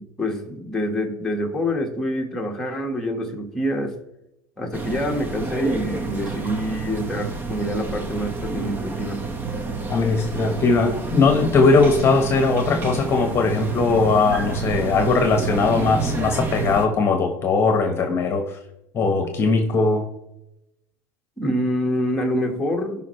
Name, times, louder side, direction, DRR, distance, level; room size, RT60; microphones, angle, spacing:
voice 1, 0.2-3.9 4.6-9.2 21.4-23.0, equal, 5° left, -1 dB, 1.6 m, -26 dB
sound 1, 4.7-16.9, right 4 dB, 25° right, 1.0 m, -29 dB
voice 2, 9.9-18.6 18.9-20.1, left 4 dB, 30° left, 4 dB, 1.3 m, -19 dB
16.5 x 5.6 x 3.2 m, 0.87 s
cardioid pair, 140°, 9 cm